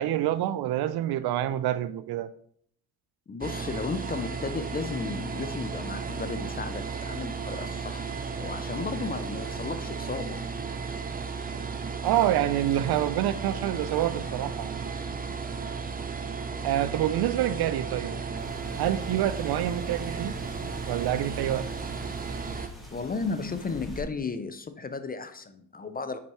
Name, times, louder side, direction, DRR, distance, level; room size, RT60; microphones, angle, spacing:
voice 1, 0.0-2.3 12.0-14.8 16.6-18.2 18.8-20.3 20.9-21.7, right 12 dB, 55° right, 0.5 m, -27 dB
voice 2, 3.3-10.4 11.5-11.7 22.9-26.2, left 4 dB, 20° left, 0.5 m, -34 dB
sound 1, 3.4-22.7, right 5 dB, 20° right, 0.7 m, -34 dB
sound 2, 18.4-24.0, equal, ahead, 2.1 m, -44 dB
6.8 x 5.2 x 3.1 m
hypercardioid pair, 65°, 46 cm